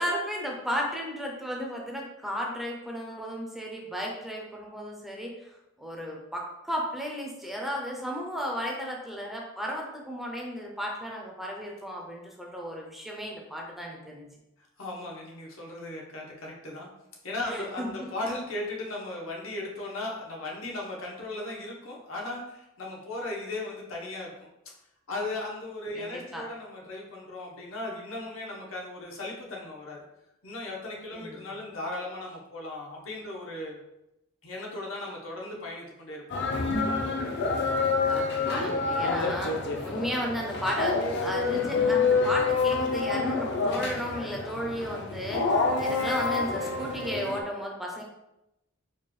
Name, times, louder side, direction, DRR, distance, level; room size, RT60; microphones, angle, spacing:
voice 1, 0.0-5.5 5.8-14.3 17.5-18.1 25.9-26.5 31.1-31.5 38.1-48.0, equal, ahead, -1 dB, 0.5 m, -34 dB
voice 2, 14.6-16.9 17.2-24.3 25.1-30.0 30.4-33.8 34.4-36.2, left 2 dB, 85° left, -2 dB, 1.0 m, -37 dB
sound 1, 36.3-47.4, left 4 dB, 55° left, 0.5 m, -27 dB
sound 2, 36.6-37.1, equal, 70° right, 0.7 m, -33 dB
4.5 x 2.3 x 3.1 m, 0.89 s
head